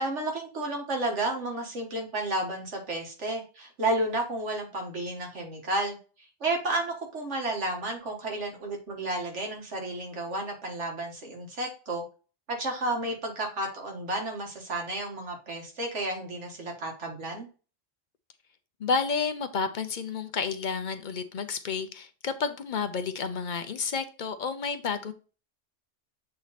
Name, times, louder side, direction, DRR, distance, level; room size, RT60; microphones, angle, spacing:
voice 1, 0.0-6.0 6.4-12.0 12.5-17.5, right 2 dB, 75° right, 1 dB, 1.9 m, -32 dB
voice 2, 18.8-25.1, left 5 dB, 50° left, 9 dB, 0.7 m, -30 dB
7.7 x 3.0 x 4.1 m, 0.35 s
omnidirectional pair, 1.2 m